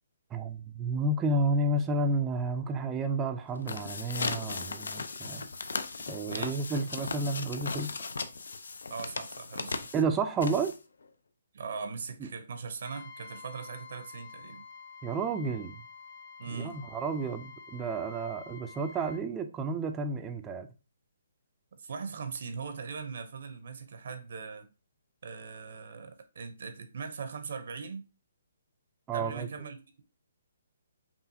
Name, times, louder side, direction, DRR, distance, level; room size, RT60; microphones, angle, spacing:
voice 1, 0.3-5.5 6.1-7.9 9.9-10.7 12.2-12.3 15.0-15.8 16.5-20.7 29.1-29.5, right 3 dB, 15° right, 0.4 m, -31 dB
sound 1, 3.5-11.0, left 4 dB, 80° left, 0.4 m, -37 dB
voice 2, 6.3-7.1 8.9-9.9 11.5-14.7 16.4-16.8 21.8-24.7 25.2-28.1 29.1-30.0, right 5 dB, 60° right, 0.6 m, -40 dB
Trumpet, 12.8-19.2, left 5 dB, 35° left, 0.7 m, -49 dB
5.5 x 2.4 x 2.7 m
hypercardioid pair, 165°, 0 cm